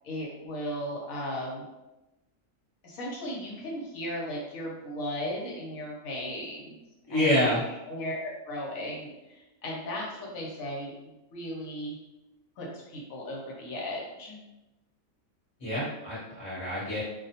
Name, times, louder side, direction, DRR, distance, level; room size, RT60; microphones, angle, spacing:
voice 1, 0.0-1.6 2.8-6.8 7.1-12.0 12.6-14.4, equal, 75° left, -3 dB, 1.1 m, -36 dB
voice 2, 7.1-7.6 15.6-17.0, left 1 dB, 25° left, -10 dB, 0.8 m, -27 dB
2.5 x 2.2 x 2.7 m, 0.99 s
omnidirectional pair, 1.5 m